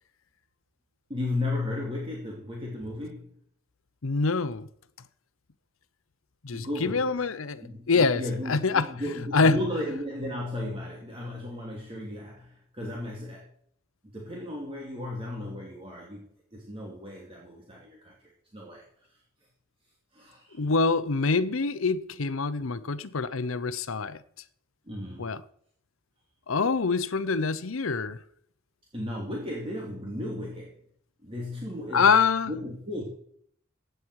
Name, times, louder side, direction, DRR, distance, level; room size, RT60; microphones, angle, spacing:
voice 1, 1.1-3.3 6.5-7.1 7.6-13.5 14.1-16.2 16.5-18.1 18.5-18.8 20.1-20.7 24.9-25.3 28.9-30.7 31.2-32.2 32.5-33.0, left 1 dB, 25° right, 2.6 m, -35 dB
voice 2, 4.0-4.7 6.4-8.2 8.5-8.9 9.3-9.6 20.6-24.2 25.2-25.4 26.5-28.2 31.9-32.5, left 4 dB, 80° left, 0.8 m, -25 dB
15.5 x 9.2 x 4.8 m
head